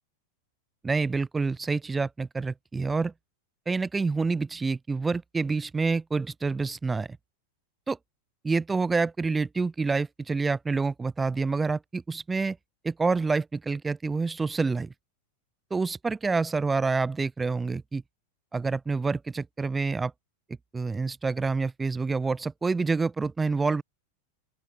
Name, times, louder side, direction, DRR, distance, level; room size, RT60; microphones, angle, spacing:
voice 1, 0.8-3.1 3.7-7.2 7.9-8.0 8.4-12.6 12.8-14.9 15.7-18.0 18.5-20.1 20.7-23.8, right 4 dB, 15° right, 4.6 m, -27 dB
open air
figure-of-eight pair, 90°, 0 cm